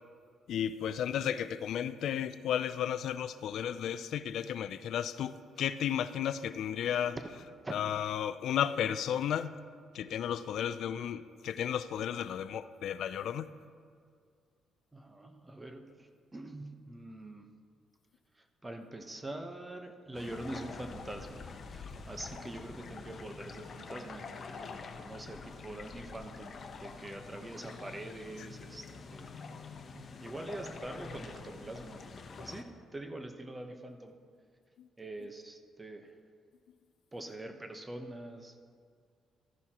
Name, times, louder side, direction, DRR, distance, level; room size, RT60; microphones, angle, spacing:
voice 1, 0.5-7.2 7.7-9.6 9.9-13.5 34.8-34.9, left 9 dB, 75° left, 13 dB, 0.3 m, -33 dB
voice 2, 14.9-17.5 18.3-29.4 30.2-32.1 32.4-32.7 32.9-34.2 35.0-36.2 37.1-38.6, right 1 dB, 20° right, 5 dB, 0.9 m, -44 dB
sound 1, 20.1-32.6, left 4 dB, 50° left, 0.9 m, -46 dB
13.5 x 10.5 x 2.9 m, 2.1 s
cardioid pair, 90°, 0 cm